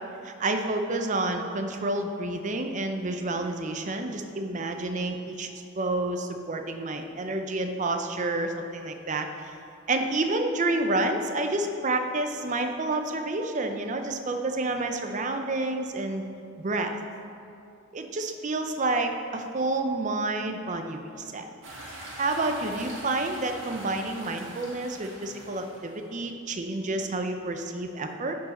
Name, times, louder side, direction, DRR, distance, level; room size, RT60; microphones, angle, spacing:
voice 1, 0.2-5.5 5.8-9.5 9.9-16.3 16.6-17.0 17.9-21.5 22.2-28.3, right 2 dB, 35° right, 5 dB, 0.5 m, -29 dB
sound 1, 21.6-26.1, right 1 dB, 65° right, 1.8 m, -43 dB
11.0 x 4.7 x 4.2 m, 2.6 s
head